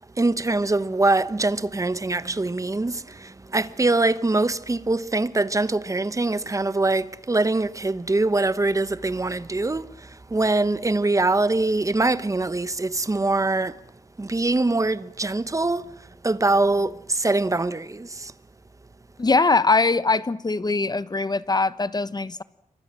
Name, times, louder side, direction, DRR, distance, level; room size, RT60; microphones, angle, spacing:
voice 1, 0.1-13.8 14.2-18.3, right 2 dB, 20° right, 1.1 m, -23 dB
voice 2, 19.2-22.4, left 3 dB, 30° left, 1.0 m, -22 dB
28.5 x 24.5 x 7.5 m
wide cardioid pair, 115°, 15 cm